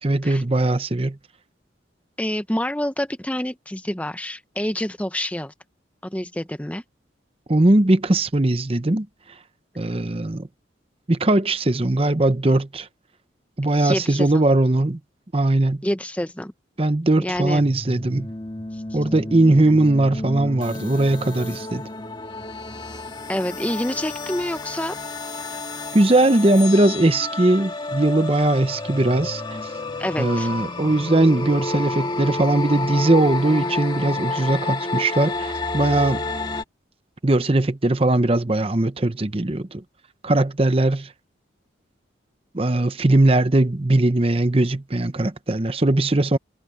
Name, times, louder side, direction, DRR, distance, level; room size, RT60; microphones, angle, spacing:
voice 1, 0.0-1.2 7.5-9.1 9.8-10.5 11.1-12.9 13.6-15.0 15.3-15.8 16.8-18.3 18.9-21.8 25.9-29.7 30.2-36.2 37.2-39.8 40.2-41.1 42.5-46.4, right 2 dB, 30° right, 0.8 m, -20 dB
voice 2, 2.2-5.5 6.0-6.8 13.8-14.4 15.8-16.5 17.2-17.6 18.7-18.8 23.3-25.0 30.0-30.5, left 1 dB, 5° left, 0.7 m, -27 dB
sound 1, 17.5-36.6, left 2 dB, 25° left, 2.1 m, -30 dB
head